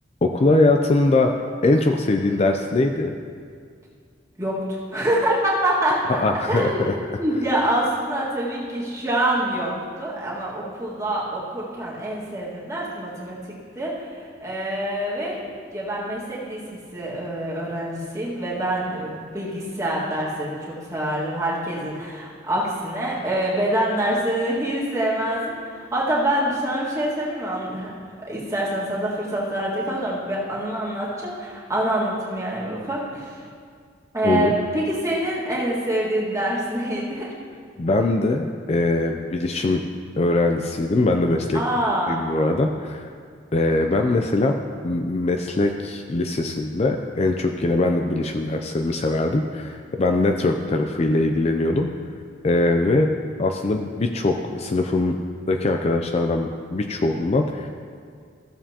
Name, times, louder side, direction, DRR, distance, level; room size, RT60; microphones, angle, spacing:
voice 1, 0.2-1.3 1.6-3.1 6.1-6.9 34.2-34.5 37.8-39.8 40.2-41.6 42.1-43.1 43.5-44.5 44.8-51.9 52.4-53.1 53.4-55.2 55.5-57.7, left 2 dB, 35° left, 4 dB, 0.4 m, -21 dB
voice 2, 4.9-6.0 6.5-9.7 10.0-13.4 13.8-14.1 14.4-15.4 15.7-16.6 16.9-27.9 28.3-33.4 34.1-37.3 41.5-42.2, right 1 dB, 15° right, -6 dB, 1.8 m, -25 dB
15.0 x 7.2 x 2.9 m, 2.1 s
head